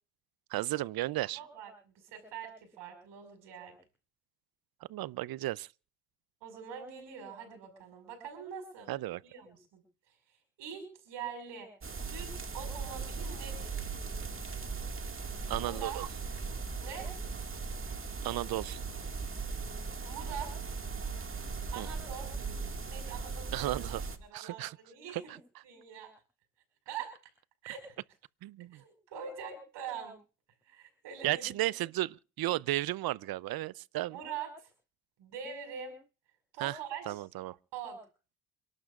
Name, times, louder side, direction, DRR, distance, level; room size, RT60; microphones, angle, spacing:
voice 1, 0.5-1.4 4.9-5.7 8.9-9.2 15.5-16.1 18.2-18.8 21.8-21.9 23.5-24.0 24.3-24.8 25.1-25.2 28.4-28.8 31.2-34.2 36.6-36.8 37.1-37.6, right 16 dB, 55° right, 0.6 m, -34 dB
voice 2, 1.3-3.8 6.4-8.9 9.2-9.8 10.6-11.7 12.0-13.8 15.6-16.0 16.8-17.2 20.0-20.7 21.7-22.3 22.9-23.8 24.2-25.4 25.6-26.1 26.9-27.1 27.6-28.0 28.7-30.2 30.7-31.5 34.1-34.7 35.2-36.0 36.5-37.2 37.7-38.0, right 7 dB, 70° right, 5.6 m, -43 dB
sound 1, 11.8-24.2, right 4 dB, 30° right, 2.0 m, -38 dB
29.5 x 12.0 x 2.5 m
hypercardioid pair, 55°, 45 cm